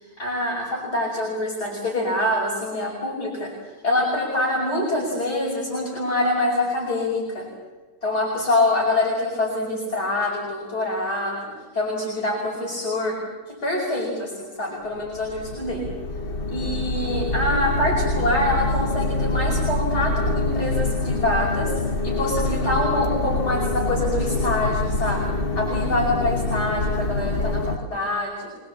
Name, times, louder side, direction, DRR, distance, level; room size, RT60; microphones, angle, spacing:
voice 1, 0.2-7.5 8.0-13.2 13.6-15.9 16.5-28.5, left 1 dB, 65° left, -3 dB, 6.2 m, -25 dB
sound 1, 14.9-27.8, left 2 dB, 35° left, 1.8 m, -25 dB
26.5 x 20.5 x 7.4 m, 1.3 s
omnidirectional pair, 1.8 m